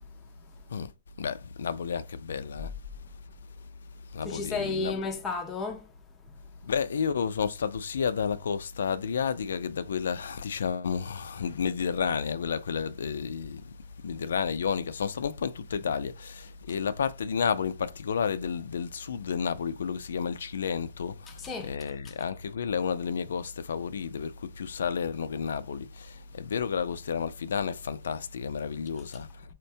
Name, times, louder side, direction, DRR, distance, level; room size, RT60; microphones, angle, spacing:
voice 1, 0.2-0.6 2.6-2.7 4.2-5.9 6.2-6.4 21.3-21.8 22.0-22.2, left 4 dB, 10° left, 0.4 m, -34 dB
voice 2, 1.2-2.7 4.1-4.9 6.6-13.7 14.0-29.4, left 6 dB, 75° left, 0.4 m, -31 dB
4.4 x 2.1 x 2.6 m
hypercardioid pair, 175°, 0 cm